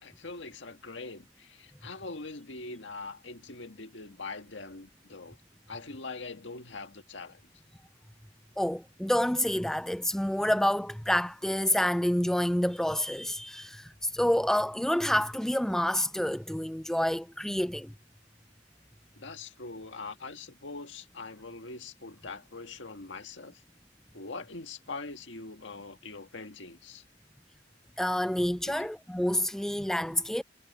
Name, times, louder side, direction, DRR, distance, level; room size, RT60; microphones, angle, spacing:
voice 1, 0.0-5.4 5.7-7.4 19.2-23.6 24.1-27.0 28.7-28.9, left 3 dB, 75° left, 1.8 m, -42 dB
voice 2, 8.6-17.9 28.0-30.4, left 1 dB, 5° left, 0.3 m, -28 dB
head